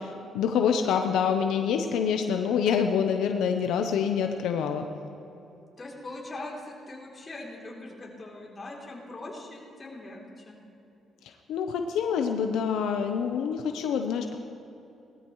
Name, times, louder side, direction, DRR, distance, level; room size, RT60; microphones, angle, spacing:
voice 1, 0.0-4.9 11.2-14.4, left 7 dB, 85° left, 5 dB, 0.7 m, -26 dB
voice 2, 5.8-10.6, left 2 dB, 30° left, -3 dB, 3.2 m, -41 dB
18.5 x 13.5 x 3.1 m, 2.8 s
cardioid pair, 90°, 0 cm